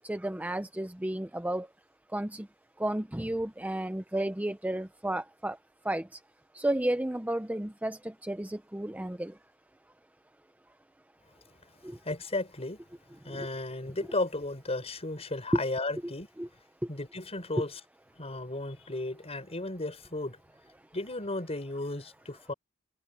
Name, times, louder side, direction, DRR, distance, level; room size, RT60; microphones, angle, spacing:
voice 1, 0.1-1.7 2.1-2.4 2.8-5.5 5.9-6.0 6.6-8.0 8.3-9.3 16.4-16.5, right 1 dB, 10° right, 0.6 m, -32 dB
voice 2, 11.8-12.8 13.2-16.3 16.9-17.8 18.2-20.4 20.9-22.5, left 2 dB, 30° left, 5.2 m, -34 dB
head